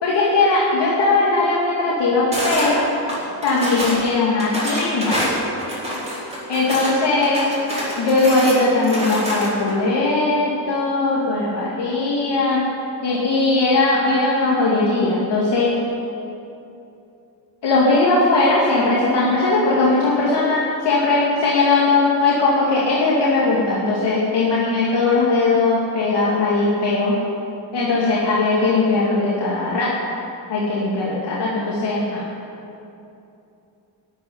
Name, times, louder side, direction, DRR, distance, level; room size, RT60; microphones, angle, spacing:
voice 1, 0.0-2.8 3.4-5.2 6.5-7.5 8.0-12.6 13.0-15.7 17.6-27.1 27.7-29.9 30.5-32.3, left 3 dB, 65° left, -6 dB, 2.5 m, -19 dB
sound 1, 2.3-2.7 3.1-4.0 4.4-6.9 7.2-9.7, equal, 15° right, 4.3 m, -26 dB
13.0 x 8.3 x 9.7 m, 2.8 s
cardioid pair, 135°, 44 cm